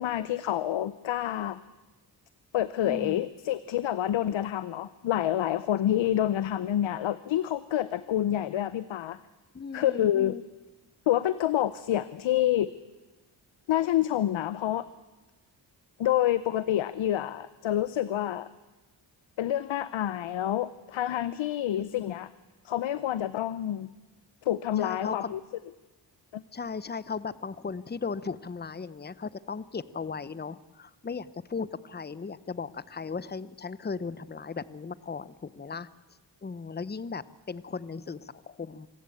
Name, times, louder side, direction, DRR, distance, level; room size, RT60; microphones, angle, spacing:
voice 1, 0.0-1.6 2.5-9.2 9.7-10.3 11.1-12.7 13.7-14.9 16.0-18.5 19.4-22.3 22.6-23.9 24.4-25.4 26.3-26.4, left 12 dB, 85° left, 15 dB, 0.8 m, -28 dB
voice 2, 2.9-3.2 9.5-10.4 21.7-22.1 24.8-25.3 26.5-35.9 36.4-38.9, left 5 dB, 20° left, 17 dB, 0.8 m, -37 dB
26.0 x 15.5 x 8.6 m, 1.2 s
cardioid pair, 75°, 45 cm